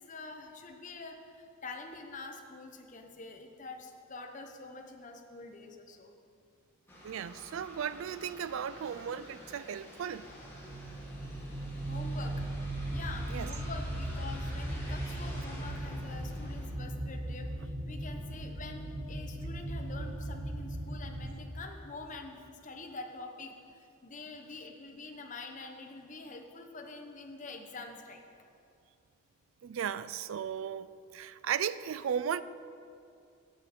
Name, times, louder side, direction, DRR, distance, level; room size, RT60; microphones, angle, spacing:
voice 1, 0.0-6.1 11.9-12.4 12.9-28.2, left 3 dB, 35° left, 0.9 m, -46 dB
sound 1, 6.9-16.7, equal, 10° left, 2.1 m, -50 dB
voice 2, 7.0-10.3 13.3-13.5 29.6-32.4, right 8 dB, 70° right, 0.3 m, -36 dB
sound 2, 10.2-21.3, right 1 dB, 55° right, 2.1 m, -38 dB
8.9 x 6.6 x 8.2 m
head